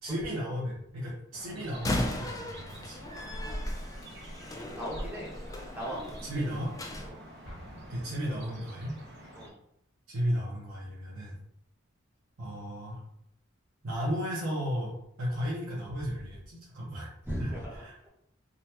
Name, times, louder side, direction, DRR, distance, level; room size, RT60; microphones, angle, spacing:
voice 1, 0.0-3.0 3.5-3.6 6.2-6.7 7.9-8.9 10.1-11.4 12.4-13.0 13.8-17.1 17.4-17.5 17.8-17.9, equal, 85° right, -7 dB, 0.8 m, -34 dB
sound 1, 1.3-9.5, right 1 dB, 50° right, 0.8 m, -49 dB
Slam, 1.7-7.1, left 1 dB, 15° left, 0.3 m, -37 dB
voice 2, 4.8-5.3 5.7-6.0 7.0-7.2 9.3-9.6 17.3-18.1, equal, 10° right, -5 dB, 0.9 m, -38 dB
Explosion, 7.4-9.2, equal, 80° left, 1.2 m, -50 dB
3.8 x 2.2 x 2.8 m, 0.72 s
head